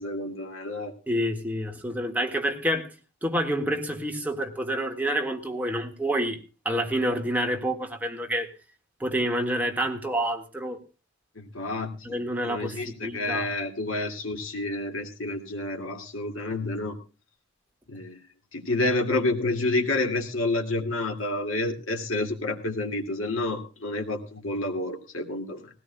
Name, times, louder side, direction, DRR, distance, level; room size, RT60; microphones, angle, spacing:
voice 1, 0.0-0.9 11.4-11.9 12.4-17.0 17.9-18.2 18.5-25.7, left 2 dB, 75° left, 2.2 m, -29 dB
voice 2, 1.1-2.9 3.2-6.4 6.6-8.5 9.0-10.8 12.0-13.5, right 1 dB, 10° right, 1.7 m, -28 dB
19.0 x 17.0 x 2.2 m
head